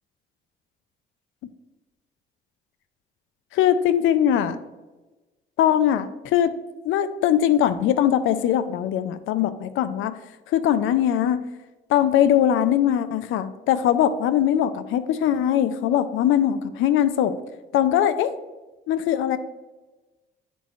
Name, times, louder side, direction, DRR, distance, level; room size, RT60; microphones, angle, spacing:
voice 1, 3.5-4.6 5.6-6.5 6.8-10.1 10.5-11.4 11.9-17.3 17.7-18.3 18.9-19.4, left 10 dB, 85° left, 12 dB, 0.4 m, -21 dB
10.0 x 4.3 x 3.0 m, 1.1 s
cardioid pair, 90°, 20 cm